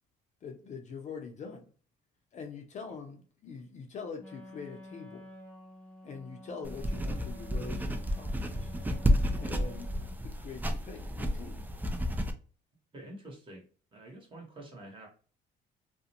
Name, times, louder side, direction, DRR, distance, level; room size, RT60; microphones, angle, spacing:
voice 1, 0.4-1.7 2.3-5.3 6.0-8.7 9.4-11.7, left 5 dB, 45° left, 0.6 m, -44 dB
Wind instrument woodwind instrument, 4.2-10.3, left 1 dB, 10° left, 0.7 m, -50 dB
sound 1, 6.6-12.3, equal, 10° right, 0.3 m, -31 dB
voice 2, 12.9-13.7 13.9-15.1, right 1 dB, 30° right, 1.1 m, -47 dB
2.5 x 2.1 x 2.8 m
cardioid pair, 110°, 17 cm